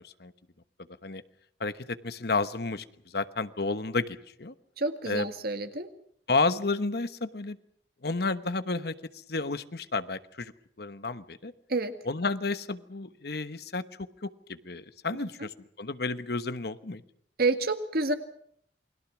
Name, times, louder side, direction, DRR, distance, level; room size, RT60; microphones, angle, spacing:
voice 1, 1.6-2.8 3.1-4.5 5.0-5.3 6.3-7.6 8.0-8.9 9.3-10.5 10.8-11.5 12.1-13.8 14.2-15.5 15.8-17.0, left 3 dB, 60° left, 12 dB, 1.1 m, -31 dB
voice 2, 4.8-5.9 11.7-12.0 15.2-15.5 17.4-18.1, right 3 dB, 60° right, 8 dB, 2.0 m, -29 dB
29.0 x 21.5 x 6.1 m, 0.66 s
head